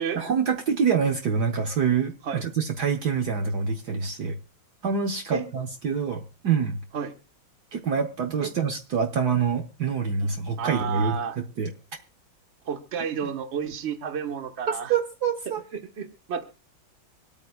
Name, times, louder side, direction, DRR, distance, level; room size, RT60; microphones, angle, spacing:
voice 1, 0.0-4.4 4.8-6.8 7.7-11.7 14.7-15.6, right 6 dB, 60° right, 4 dB, 1.5 m, -26 dB
voice 2, 10.6-11.4 12.7-14.9 16.0-16.4, right 7 dB, 40° right, 6 dB, 1.3 m, -31 dB
25.0 x 8.8 x 2.3 m, 0.31 s
omnidirectional pair, 2.2 m